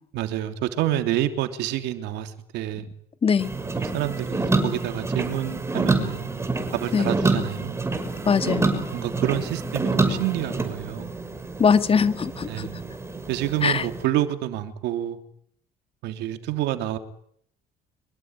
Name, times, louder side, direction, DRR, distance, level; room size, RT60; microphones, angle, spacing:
voice 1, 0.1-2.9 3.8-6.3 6.7-7.8 8.9-11.1 12.5-12.8 13.3-15.2 16.0-17.0, right 13 dB, 85° right, 8 dB, 3.2 m, -28 dB
voice 2, 3.2-3.5 6.9-7.1 8.2-8.7 11.6-12.7 13.6-13.9, left 6 dB, 35° left, 10 dB, 2.3 m, -21 dB
sound 1, 3.4-14.0, right 3 dB, 15° right, 6.3 m, -27 dB
25.5 x 23.0 x 9.9 m, 0.69 s
cardioid pair, 110°, 17 cm